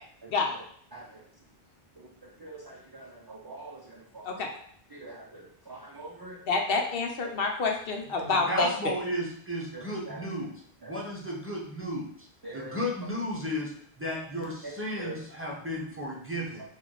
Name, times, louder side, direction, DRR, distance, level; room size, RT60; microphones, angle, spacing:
voice 1, 2.4-4.4 4.9-6.4 9.7-10.2 10.8-10.9 12.4-12.7 14.6-14.7 15.0-15.1, right 2 dB, 35° right, -2 dB, 0.4 m, -44 dB
voice 2, 6.5-8.7, left 3 dB, 70° left, 3 dB, 0.8 m, -28 dB
voice 3, 8.3-10.6 10.9-13.7 14.0-16.6, equal, 15° right, -4 dB, 0.8 m, -34 dB
4.6 x 2.5 x 3.8 m, 0.62 s
omnidirectional pair, 1.0 m